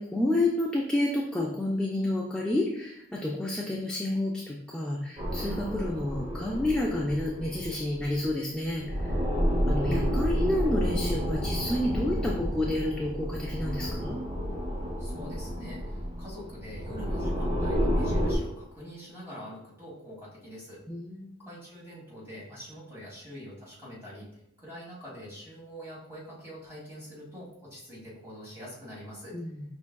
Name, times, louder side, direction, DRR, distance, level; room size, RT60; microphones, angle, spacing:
voice 1, 0.0-9.2 9.7-14.2 20.9-21.5 29.3-29.6, left 1 dB, 5° left, -3 dB, 0.3 m, -30 dB
sound 1, 5.2-8.3 8.6-18.4, equal, 30° right, 0.7 m, -30 dB
voice 2, 15.0-20.8 21.4-29.4, equal, 10° right, -7 dB, 1.6 m, -44 dB
5.3 x 3.5 x 2.2 m, 0.79 s
head